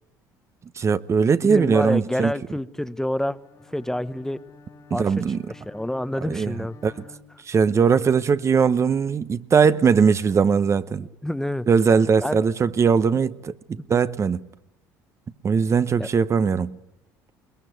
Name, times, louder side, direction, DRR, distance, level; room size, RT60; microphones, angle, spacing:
voice 1, 0.8-2.3 4.9-5.4 6.2-6.5 6.8-6.9 7.5-11.1 11.7-14.4 15.4-16.7, right 6 dB, 35° right, 0.9 m, -20 dB
voice 2, 1.4-3.4 3.7-4.4 4.9-5.1 5.5-6.8 10.9-11.7 12.2-12.4 13.9-14.0 16.0-16.1, left 1 dB, 5° left, 0.9 m, -28 dB
Bowed string instrument, 3.3-7.9, left 3 dB, 45° left, 2.5 m, -50 dB
21.5 x 21.0 x 9.3 m
supercardioid pair, 80°, 8 cm